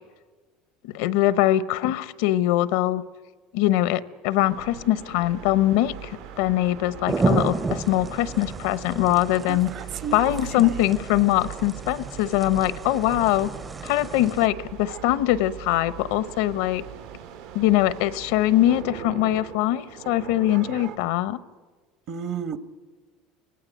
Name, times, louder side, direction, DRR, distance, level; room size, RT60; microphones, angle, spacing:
voice 1, 0.9-3.0 3.5-9.7 10.1-13.5 13.8-16.8 17.5-21.4, left 14 dB, 80° left, 16 dB, 0.9 m, -22 dB
sound 1, 4.4-18.8, right 10 dB, 90° right, 6.1 m, -41 dB
sound 2, 7.1-14.5, right 3 dB, 20° right, 0.7 m, -31 dB
voice 2, 9.5-10.8 20.6-20.8 22.1-22.6, right 7 dB, 55° right, 12 dB, 1.5 m, -33 dB
sound 3, 14.4-21.0, right 9 dB, 75° right, 1.8 m, -42 dB
24.5 x 17.5 x 9.0 m, 1.4 s
supercardioid pair, 125°, 0 cm